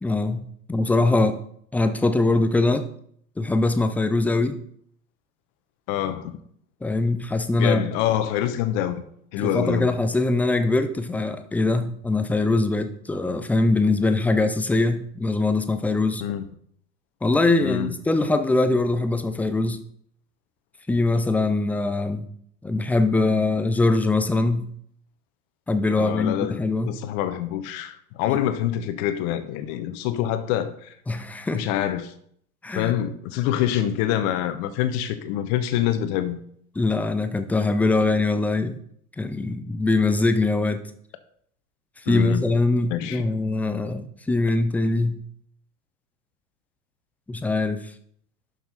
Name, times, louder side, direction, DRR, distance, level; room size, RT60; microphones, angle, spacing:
voice 1, 0.0-1.4 1.7-2.9 3.4-4.6 6.8-7.9 9.4-16.3 17.2-19.8 20.9-22.3 22.6-24.7 25.7-26.9 28.3-28.4 31.1-31.6 32.6-32.9 36.8-38.8 39.2-40.8 42.1-45.2 47.3-47.9, left 2 dB, 5° left, 0.5 m, -22 dB
voice 2, 5.9-6.3 7.6-9.0 9.3-9.9 16.2-16.5 17.6-18.0 26.0-26.6 26.9-30.9 31.5-32.1 32.7-36.4 42.1-42.4 42.9-43.2, left 11 dB, 40° left, 1.2 m, -26 dB
11.5 x 5.9 x 4.3 m
figure-of-eight pair, 85°, 46 cm